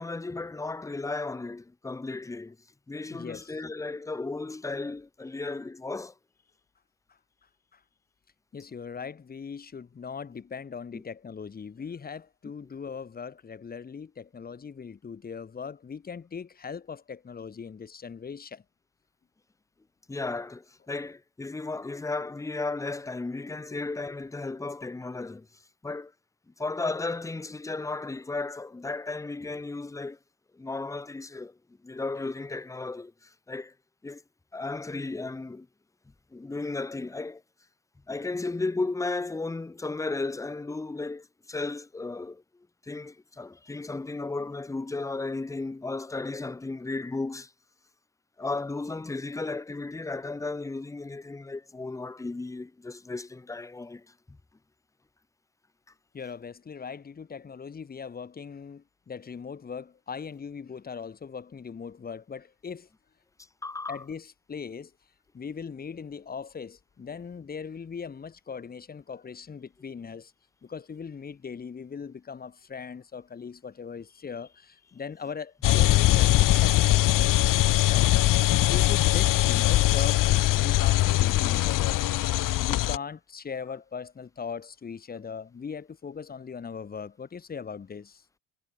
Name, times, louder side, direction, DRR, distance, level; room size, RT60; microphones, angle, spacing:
voice 1, 0.0-2.6 2.9-6.1 10.9-11.0 20.1-25.5 25.8-26.1 26.6-30.2 30.5-31.6 31.8-33.7 34.0-34.2 34.5-35.7 36.3-37.4 38.1-42.4 42.8-47.5 48.4-54.4 63.6-64.0, left 3 dB, 10° left, 1.1 m, -34 dB
voice 2, 3.1-3.6 7.1-7.2 7.7-7.8 8.5-18.6 56.1-62.9 63.9-64.9 65.3-70.3 70.6-77.4 77.7-82.0 82.6-88.2, left 6 dB, 25° left, 4.1 m, -39 dB
sound 1, 75.6-83.0, left 16 dB, 70° left, 0.9 m, -22 dB
cardioid pair, 175°, 33 cm